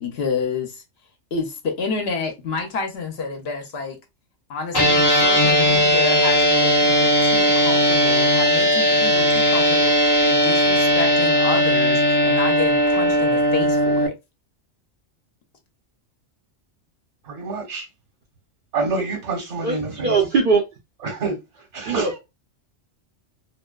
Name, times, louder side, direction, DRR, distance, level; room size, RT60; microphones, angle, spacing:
voice 1, 0.0-0.8 1.3-4.0 4.5-14.1, left 4 dB, 60° left, 0.8 m, -29 dB
sound 1, 4.7-14.1, equal, 40° left, 0.3 m, -18 dB
voice 2, 17.2-17.9 18.7-20.1 21.0-22.2, right 3 dB, 70° right, 1.4 m, -27 dB
voice 3, 19.6-20.6 21.9-22.1, right 4 dB, 55° right, 0.6 m, -20 dB
2.7 x 2.1 x 2.3 m
omnidirectional pair, 1.3 m